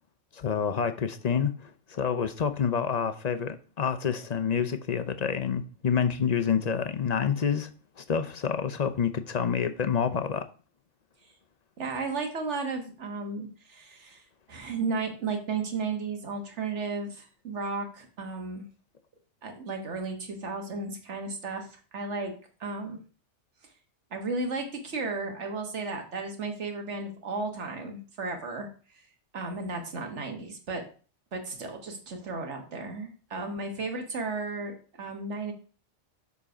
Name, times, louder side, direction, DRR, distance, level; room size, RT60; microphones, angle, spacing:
voice 1, 0.3-7.7 8.0-10.5, left 7 dB, 45° left, 0.6 m, -28 dB
voice 2, 11.8-14.2 14.5-18.6 19.4-21.7 21.9-22.3 22.6-23.0 24.1-28.7 29.3-30.8 31.3-35.5, right 3 dB, 75° right, 1.7 m, -34 dB
7.3 x 4.1 x 5.0 m
omnidirectional pair, 1.2 m